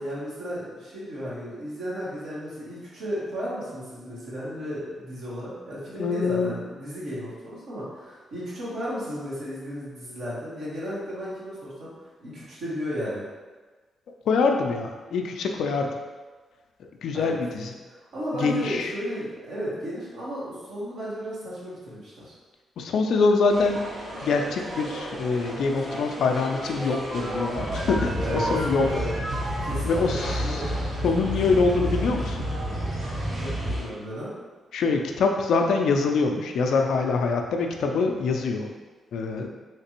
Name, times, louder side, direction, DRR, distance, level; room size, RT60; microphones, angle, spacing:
voice 1, 0.0-11.9 12.2-13.3 17.1-17.3 17.9-22.3 28.2-28.5 28.8-29.1 29.6-30.7 33.3-34.3, equal, 75° right, -9 dB, 1.4 m, -34 dB
voice 2, 6.0-6.5 14.3-15.9 16.8-17.7 18.4-18.9 22.8-23.9 24.2-28.9 29.8-30.7 31.0-32.5 34.7-38.7 39.1-39.5, left 4 dB, 70° left, 3 dB, 0.4 m, -24 dB
sound 1, 23.5-33.9, right 1 dB, 55° right, 0.9 m, -37 dB
sound 2, 26.2-30.4, right 1 dB, 35° right, 1.0 m, -34 dB
sound 3, 27.6-33.8, equal, 15° right, 0.6 m, -30 dB
3.2 x 3.2 x 2.9 m, 1.3 s
hypercardioid pair, 45°, 0 cm